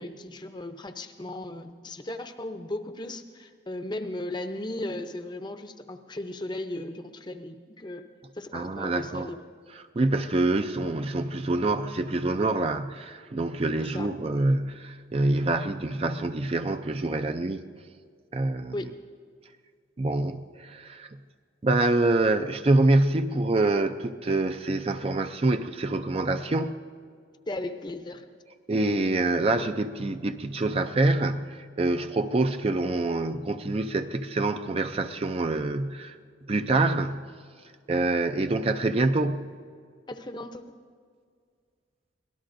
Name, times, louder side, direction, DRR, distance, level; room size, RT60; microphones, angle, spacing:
voice 1, 0.0-8.1 8.3-9.4 13.8-14.1 18.7-18.9 27.5-28.2 40.1-40.7, left 1 dB, 25° left, 8 dB, 0.6 m, -36 dB
voice 2, 8.5-9.3 10.0-17.6 18.3-18.7 20.0-21.1 21.6-26.7 28.7-36.1 36.5-37.2 37.9-39.5, right 2 dB, 30° right, 8 dB, 0.4 m, -26 dB
24.5 x 18.0 x 2.6 m, 2.1 s
head